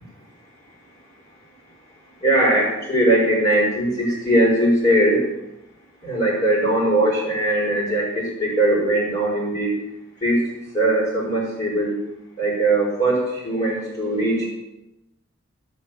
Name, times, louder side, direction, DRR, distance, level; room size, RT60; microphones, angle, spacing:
voice 1, 2.2-5.3 6.0-9.7 10.2-11.9 12.4-14.5, right 1 dB, 35° left, -7 dB, 5.1 m, -20 dB
16.5 x 6.5 x 9.1 m, 0.91 s
head